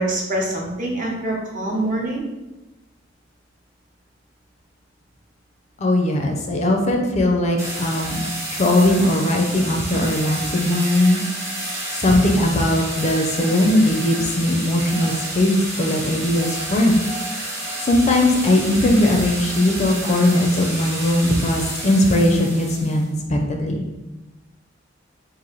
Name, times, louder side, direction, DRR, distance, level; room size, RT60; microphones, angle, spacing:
voice 1, 0.0-2.2, right 1 dB, 45° right, -2 dB, 0.9 m, -25 dB
voice 2, 5.8-11.2 12.0-17.0 17.9-23.8, left 1 dB, 35° left, 2 dB, 0.5 m, -19 dB
sound 1, 7.6-23.1, right 1 dB, 15° right, 0.9 m, -30 dB
3.0 x 2.6 x 3.9 m, 1.0 s
head